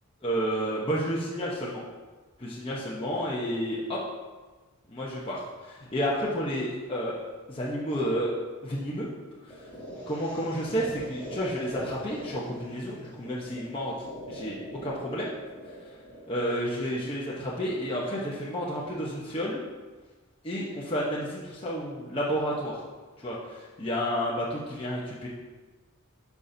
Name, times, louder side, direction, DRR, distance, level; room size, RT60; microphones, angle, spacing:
voice 1, 0.2-1.8 2.4-4.0 4.9-8.3 8.6-9.1 9.4-9.7 10.1-13.9 14.3-15.3 15.8-15.9 16.3-19.6 20.4-22.8 23.2-25.3, equal, 25° left, -6 dB, 1.0 m, -31 dB
sound 1, 9.5-17.5, equal, 10° left, 2.4 m, -43 dB
11.5 x 5.8 x 2.7 m, 1.3 s
head